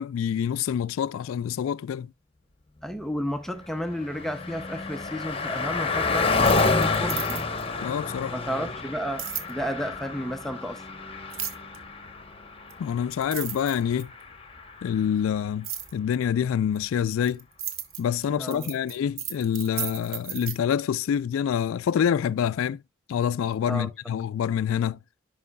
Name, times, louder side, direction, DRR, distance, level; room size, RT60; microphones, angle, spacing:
voice 1, 0.0-2.1 7.8-8.3 12.8-14.1 14.8-17.4 18.0-22.8 23.1-25.0, left 8 dB, 80° left, 0.3 m, -26 dB
voice 2, 2.8-7.4 8.3-10.8 18.3-18.7 23.7-23.9, equal, ahead, 0.4 m, -32 dB
Car passing by, 3.4-15.2, left 4 dB, 25° left, 0.9 m, -29 dB
sound 1, 6.3-7.7 9.2-9.5 11.3-11.8 12.7-12.8 13.1-14.2 15.6-15.9 16.8-20.6, right 9 dB, 80° right, 1.2 m, -34 dB
10.5 x 5.3 x 2.2 m
head